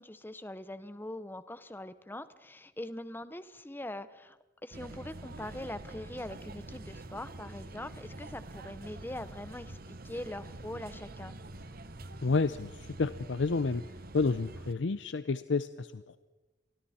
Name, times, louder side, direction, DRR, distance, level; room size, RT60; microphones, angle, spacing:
voice 1, 0.0-11.3, left 1 dB, 10° left, 13 dB, 0.9 m, -42 dB
sound 1, 4.7-14.7, right 2 dB, 55° right, 1.2 m, -46 dB
voice 2, 12.2-13.8 14.1-16.2, left 4 dB, 80° left, 13 dB, 0.6 m, -30 dB
30.0 x 24.0 x 4.3 m, 1.1 s
head